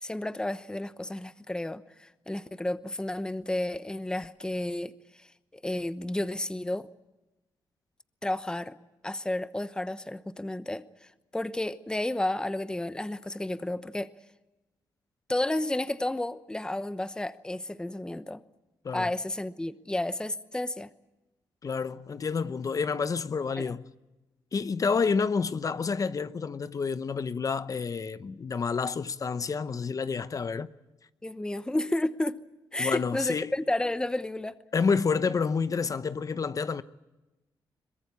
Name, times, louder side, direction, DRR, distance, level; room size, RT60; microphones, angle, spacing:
voice 1, 0.0-4.9 5.2-5.3 5.6-6.8 8.2-8.8 9.0-10.8 11.3-14.1 15.3-18.4 18.9-20.9 23.6-23.8 31.2-32.4 32.7-34.5, left 1 dB, 10° left, 0.9 m, -31 dB
voice 2, 21.6-23.8 24.5-30.7 32.8-33.5 34.7-36.8, left 5 dB, 45° left, 0.9 m, -29 dB
22.5 x 21.5 x 8.6 m
cardioid pair, 80°, 8 cm